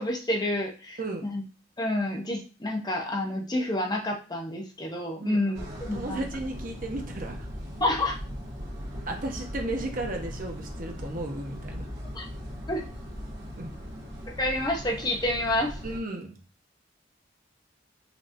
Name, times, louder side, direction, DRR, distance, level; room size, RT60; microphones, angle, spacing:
voice 1, 0.0-1.4 1.8-6.3 7.8-8.2 12.1-12.2 12.7-12.8 14.3-15.8, left 1 dB, 20° left, 1 dB, 0.7 m, -29 dB
voice 2, 5.2-5.6 5.9-7.5 9.1-11.9 13.6-13.7 15.8-16.4, right 2 dB, 45° right, 2 dB, 0.9 m, -34 dB
sound 1, 5.5-16.0, equal, 65° right, 1.5 m, -39 dB
5.8 x 2.9 x 2.6 m, 0.34 s
head